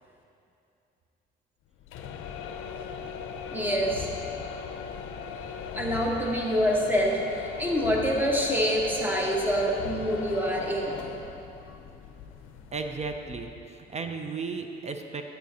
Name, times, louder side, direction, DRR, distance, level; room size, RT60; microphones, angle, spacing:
sound 1, 1.8-13.7, left 6 dB, 90° left, 0.5 m, -38 dB
voice 1, 3.5-4.1 5.7-11.1 11.7-11.8, equal, 10° right, -2 dB, 1.3 m, -26 dB
voice 2, 12.7-15.2, right 4 dB, 35° right, 6 dB, 0.5 m, -35 dB
9.1 x 9.0 x 2.8 m, 2.6 s
cardioid pair, 90°, 20 cm